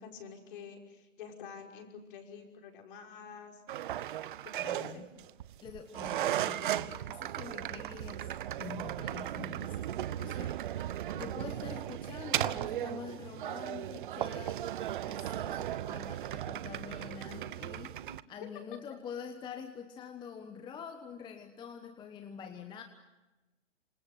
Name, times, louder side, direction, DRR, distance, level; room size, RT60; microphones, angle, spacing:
voice 1, 0.0-3.6 4.4-5.1 18.1-18.5, left 6 dB, 45° left, 2 dB, 5.8 m, -48 dB
sound 1, 3.7-18.2, right 12 dB, 45° right, 0.9 m, -36 dB
voice 2, 4.7-5.1 5.6-8.3 8.6-18.0 18.3-22.8, left 7 dB, 10° left, 6 dB, 1.2 m, -46 dB
27.5 x 27.0 x 7.9 m, 1.1 s
hypercardioid pair, 130°, 37 cm